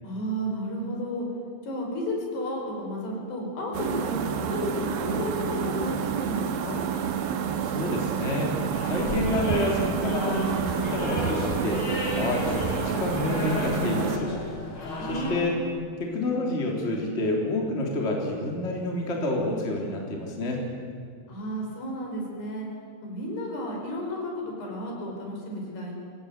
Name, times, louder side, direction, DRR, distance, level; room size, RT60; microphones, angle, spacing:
voice 1, 0.0-1.3 1.6-6.8 15.0-15.5 21.3-22.7 23.0-26.0, equal, 65° left, 0 dB, 6.9 m, -32 dB
sound 1, 3.7-14.2, right 7 dB, 65° right, 3.0 m, -29 dB
voice 2, 7.6-8.6 8.8-11.8 12.1-14.4 15.1-15.6 16.0-20.6, left 1 dB, 15° left, 0 dB, 3.2 m, -28 dB
sound 2, 8.7-15.4, left 2 dB, 35° left, 3.4 m, -34 dB
24.0 x 18.5 x 9.5 m, 2.1 s
omnidirectional pair, 5.0 m